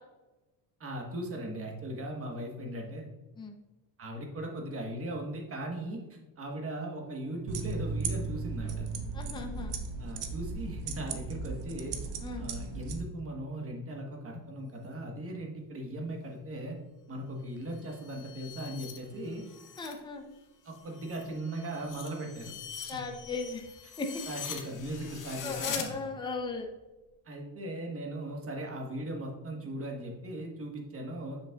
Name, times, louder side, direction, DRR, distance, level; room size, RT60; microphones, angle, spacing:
voice 1, 0.8-3.1 4.0-8.8 10.0-12.0 12.4-16.8 17.1-19.4 20.6-22.5 22.9-23.0 23.8-23.9 24.3-25.9 27.2-31.4, right 1 dB, 30° right, 1 dB, 1.3 m, -38 dB
sound 1, 7.5-13.0, right 4 dB, 75° right, 0.9 m, -36 dB
voice 2, 9.1-9.8 12.2-12.5 19.8-20.3 22.9-23.6 24.0-24.1 25.4-26.7, left 4 dB, 10° left, 2 dB, 0.6 m, -37 dB
sound 2, 17.6-20.0 20.4-25.9, left 7 dB, 45° left, 1.0 m, -43 dB
7.1 x 6.5 x 2.4 m, 1.1 s
cardioid pair, 145°, 43 cm